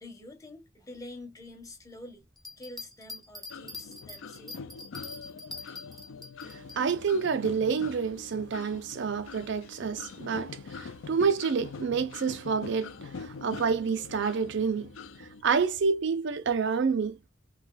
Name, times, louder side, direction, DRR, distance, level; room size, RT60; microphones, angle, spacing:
voice 1, 0.0-2.3 2.6-4.6, left 1 dB, 15° left, 0.9 m, -47 dB
sound 1, 2.4-6.8, left 3 dB, ahead, 0.4 m, -43 dB
sound 2, 3.5-15.4, left 5 dB, 75° left, 0.4 m, -44 dB
voice 2, 6.8-14.9 15.4-17.3, right 5 dB, 60° right, 0.4 m, -28 dB
3.3 x 2.7 x 2.2 m
head